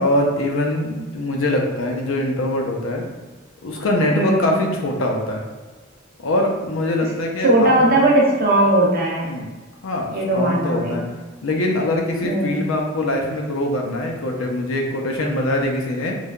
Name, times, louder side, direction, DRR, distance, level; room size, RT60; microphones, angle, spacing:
voice 1, 0.0-3.0 3.6-5.4 6.2-7.7 9.2-9.5 9.8-11.1 11.4-16.2, left 1 dB, 85° left, 1 dB, 0.5 m, -23 dB
voice 2, 4.1-4.5 7.0-7.1 7.4-9.3 10.1-11.0 12.2-12.6, right 1 dB, 45° right, -3 dB, 0.6 m, -18 dB
3.1 x 2.1 x 2.4 m, 1.3 s
head